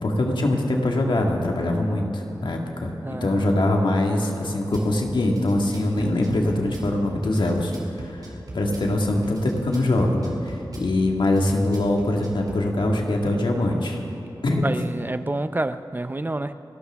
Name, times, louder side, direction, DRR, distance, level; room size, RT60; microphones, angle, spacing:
voice 1, 0.0-7.7 8.0-8.2 8.5-14.0 14.4-14.8, left 1 dB, 80° left, 1 dB, 1.8 m, -23 dB
voice 2, 3.0-3.6 14.6-16.5, right 2 dB, 25° right, 11 dB, 0.5 m, -28 dB
Drum kit / Bass drum, 4.7-4.9 5.2-6.9 7.2-8.9 9.2-10.9 11.4-12.6, right 2 dB, 55° right, 2.7 m, -40 dB
30.0 x 12.5 x 3.6 m, 2.8 s
wide cardioid pair, 70°, 8 cm